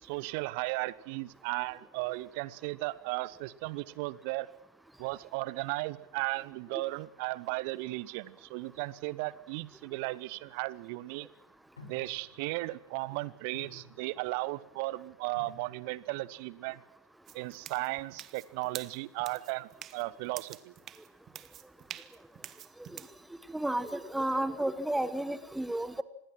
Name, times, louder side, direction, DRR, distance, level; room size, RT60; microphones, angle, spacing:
voice 1, 0.0-4.5 5.0-11.3 11.8-16.8 17.3-20.7, right 21 dB, 45° right, 19 dB, 1.1 m, -36 dB
sound 1, 10.4-10.5 11.8-12.5 12.9-13.1 13.5-14.4 15.3-16.1 16.5-16.7, left 1 dB, 70° left, 5.1 m, -52 dB
sound 2, 17.3-23.2, right 11 dB, 30° right, 1.3 m, -47 dB
voice 2, 23.5-26.0, right 1 dB, 5° right, 15 dB, 1.4 m, -32 dB
26.5 x 21.0 x 6.2 m, 0.86 s
figure-of-eight pair, 90°, 0 cm